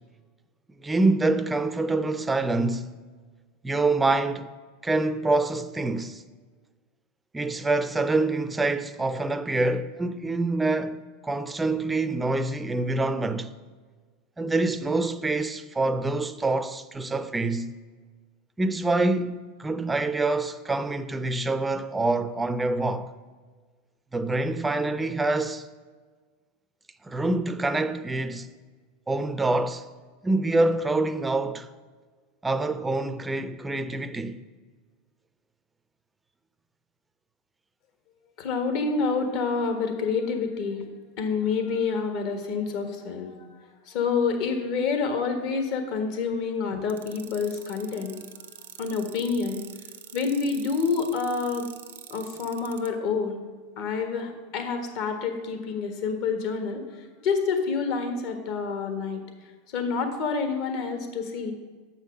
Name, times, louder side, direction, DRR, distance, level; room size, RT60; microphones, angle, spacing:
voice 1, 0.8-2.9 3.6-4.5 4.8-6.2 7.3-13.5 14.4-17.8 18.6-23.1 24.1-25.7 27.0-28.5 29.1-29.9 30.2-31.7 32.4-34.4, right 2 dB, 10° right, 0.5 m, -26 dB
voice 2, 38.4-40.8 41.2-43.4 43.8-48.1 48.8-49.6 50.1-51.7 52.1-53.4 53.8-59.2 59.7-61.5, left 5 dB, 60° left, 1.5 m, -28 dB
sound 1, 46.9-52.9, right 10 dB, 85° right, 0.7 m, -44 dB
7.1 x 5.6 x 7.2 m
hypercardioid pair, 115°, 0 cm